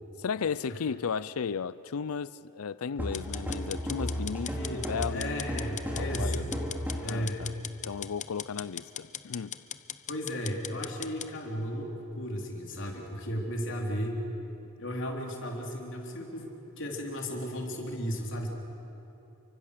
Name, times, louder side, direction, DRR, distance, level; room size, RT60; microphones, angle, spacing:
voice 1, 0.2-5.5 5.9-6.7 7.0-7.5 7.8-9.6, left 6 dB, 85° left, 18 dB, 0.5 m, -35 dB
sound 1, 3.0-7.2, equal, 10° right, 2.9 m, -34 dB
sound 2, 3.1-11.3, left 10 dB, 35° left, 0.7 m, -40 dB
voice 2, 4.4-6.5 7.0-7.5 10.1-14.3 14.8-18.5, equal, 60° left, 1 dB, 3.6 m, -35 dB
30.0 x 24.5 x 6.7 m, 2.9 s
head